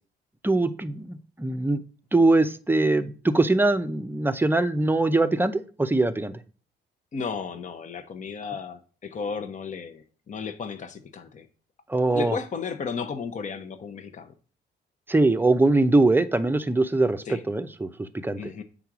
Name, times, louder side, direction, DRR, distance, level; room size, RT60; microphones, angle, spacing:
voice 1, 0.4-1.8 2.1-6.4 11.9-12.4 15.1-18.4, right 2 dB, 10° right, 0.6 m, -22 dB
voice 2, 7.1-11.5 12.1-14.3 17.3-17.4 18.4-18.6, left 5 dB, 40° left, 0.8 m, -34 dB
8.0 x 3.8 x 6.0 m
cardioid pair, 90°, 20 cm